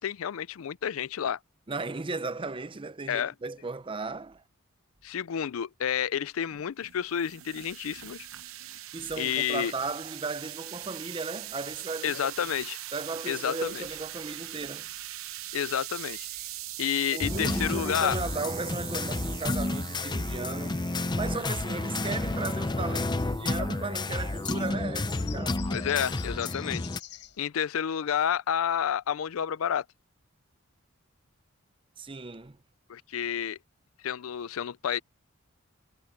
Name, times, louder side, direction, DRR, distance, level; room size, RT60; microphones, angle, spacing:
voice 1, 0.0-1.4 3.1-3.3 5.0-8.3 9.2-9.7 12.0-12.8 13.3-13.8 15.5-16.3 16.8-18.1 25.7-26.9 27.4-29.8 32.9-33.6 34.0-35.0, left 8 dB, 80° left, 0.4 m, -30 dB
voice 2, 1.7-4.4 8.9-12.5 12.9-14.9 17.1-20.8 21.1-25.7 32.0-32.6, right 3 dB, 25° right, 0.7 m, -36 dB
sound 1, 6.5-24.7, right 14 dB, 85° right, 0.8 m, -42 dB
sound 2, 13.6-27.4, left 12 dB, 60° left, 6.5 m, -52 dB
sound 3, 17.2-27.0, left 2 dB, 20° left, 0.6 m, -31 dB
head